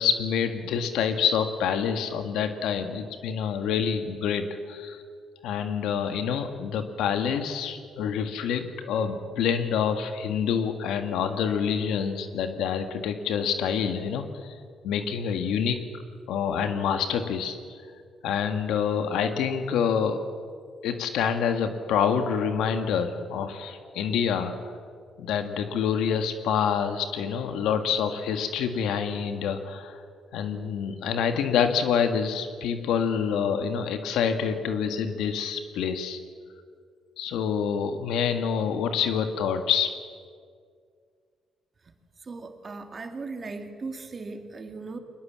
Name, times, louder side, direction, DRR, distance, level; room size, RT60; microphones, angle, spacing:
voice 1, 0.0-5.0 5.4-14.5 14.8-15.8 16.3-17.6 18.2-20.2 20.8-24.7 25.2-30.0 30.3-36.2 37.2-39.9, left 7 dB, 85° left, 7 dB, 1.7 m, -27 dB
voice 2, 42.2-45.0, right 3 dB, 35° right, 6 dB, 2.4 m, -38 dB
22.5 x 20.5 x 7.5 m, 2.1 s
cardioid pair, 90°, 0 cm